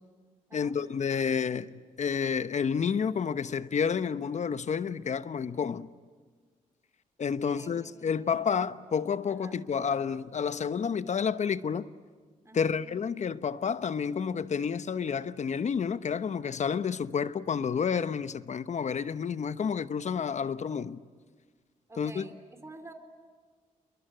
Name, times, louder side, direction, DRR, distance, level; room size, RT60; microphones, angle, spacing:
voice 1, 0.5-5.9 7.2-11.9 12.5-21.0 22.0-22.3, left 6 dB, 55° left, 1.0 m, -30 dB
voice 2, 7.4-8.7 9.3-9.6 12.4-12.7 21.9-22.3 22.6-22.9, right 2 dB, 20° right, 3.9 m, -49 dB
29.0 x 22.5 x 9.0 m
cardioid pair, 60°, 14 cm